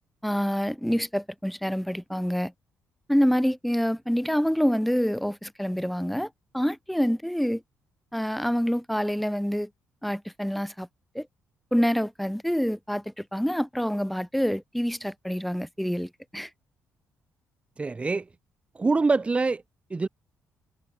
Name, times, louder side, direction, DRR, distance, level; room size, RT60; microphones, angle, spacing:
voice 1, 0.2-2.5 3.1-7.6 8.1-9.7 10.0-10.9 11.1-11.3 11.7-16.5, equal, ahead, 2.7 m, -27 dB
voice 2, 17.8-18.2 18.7-19.6 19.9-20.1, right 3 dB, 20° right, 2.6 m, -24 dB
cardioid pair, 110°, 5 cm